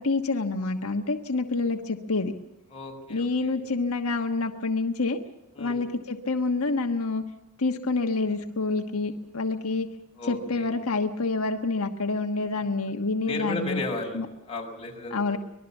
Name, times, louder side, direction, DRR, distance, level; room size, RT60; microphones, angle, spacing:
voice 1, 0.0-2.3 3.1-5.2 5.6-7.2 7.6-9.9 10.3-13.8 14.1-14.3 15.1-15.4, left 3 dB, 80° left, 4 dB, 1.3 m, -27 dB
voice 2, 2.7-3.6 5.5-5.8 10.2-10.7 13.3-14.2 14.5-15.4, left 2 dB, 25° left, 0 dB, 5.7 m, -34 dB
25.0 x 20.5 x 7.2 m, 1.0 s
head